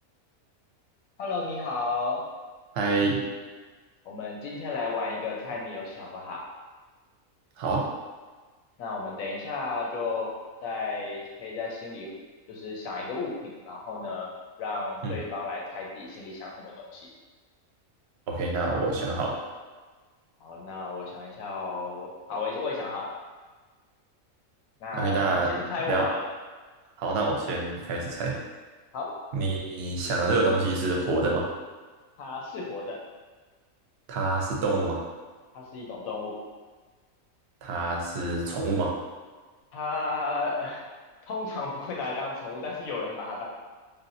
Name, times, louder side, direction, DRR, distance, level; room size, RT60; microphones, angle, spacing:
voice 1, 1.2-2.2 4.0-6.4 8.8-10.4 10.6-12.1 12.5-14.3 14.6-17.1 20.4-23.1 24.8-26.2 28.9-29.1 32.2-33.0 35.5-36.4 39.7-40.8 41.3-43.5, left 3 dB, 90° left, -2 dB, 1.1 m, -33 dB
voice 2, 2.7-3.2 7.6-7.9 15.0-15.2 18.3-19.4 24.9-25.5 25.9-26.1 27.0-28.4 29.3-31.5 34.1-35.0 37.6-38.9, right 3 dB, 65° right, -1 dB, 0.7 m, -27 dB
3.3 x 2.5 x 2.6 m, 1.4 s
omnidirectional pair, 1.4 m